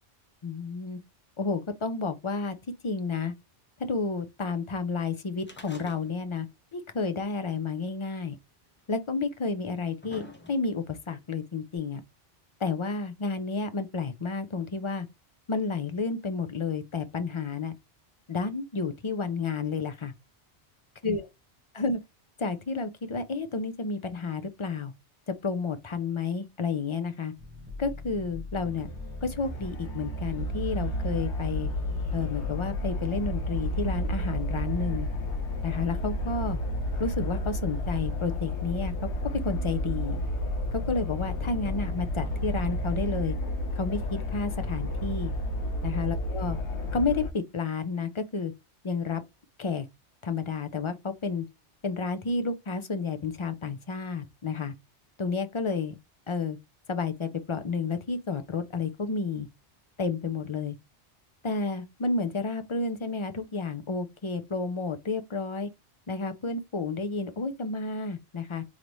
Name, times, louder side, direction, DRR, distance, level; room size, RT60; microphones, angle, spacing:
voice 1, 0.4-1.0 1.4-2.5 2.8-3.3 3.9-6.5 6.7-8.4 8.9-12.0 12.6-15.1 15.5-17.7 18.3-20.1 21.0-21.3 21.7-22.0 22.4-24.9 25.3-27.3 27.8-28.9 29.2-31.7 32.1-35.1 35.6-36.6 37.0-38.9 39.3-40.2 40.7-43.4 43.8-44.0 44.3-45.3 45.8-46.6 46.9-48.5 48.8-49.2 49.6-49.9 50.2-51.4 51.8-54.7 55.2-55.9 56.3-56.6 56.9-59.5 60.0-60.8 61.4-65.7 66.1-68.6, left 4 dB, 35° left, 0.5 m, -31 dB
sound 1, 5.4-6.4 6.7-6.8 7.8-7.9 8.8-8.9 9.6-10.9 11.8-11.9, left 1 dB, 10° left, 0.8 m, -47 dB
sound 2, 27.4-43.0, left 3 dB, 10° right, 1.1 m, -42 dB
sound 3, 28.6-47.3, left 1 dB, 75° left, 1.3 m, -31 dB
3.9 x 3.3 x 3.0 m
omnidirectional pair, 1.2 m